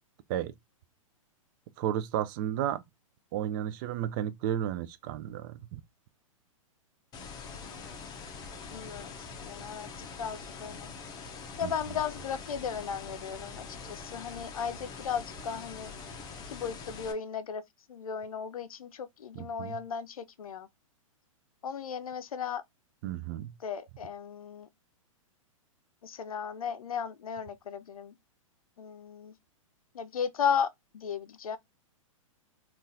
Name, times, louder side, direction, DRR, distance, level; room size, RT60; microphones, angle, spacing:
voice 1, 1.8-2.8 3.3-5.8 11.6-11.7 19.4-19.8 23.0-23.5, right 11 dB, 35° right, 0.4 m, -33 dB
sound 1, 7.1-17.1, left 5 dB, 20° left, 0.7 m, -44 dB
voice 2, 8.7-10.9 11.6-15.9 16.5-17.6 17.9-20.7 21.6-22.6 23.6-24.7 26.0-28.1 28.8-29.3 29.9-31.6, left 7 dB, 90° left, 0.5 m, -35 dB
3.8 x 2.4 x 2.6 m
hypercardioid pair, 125°, 18 cm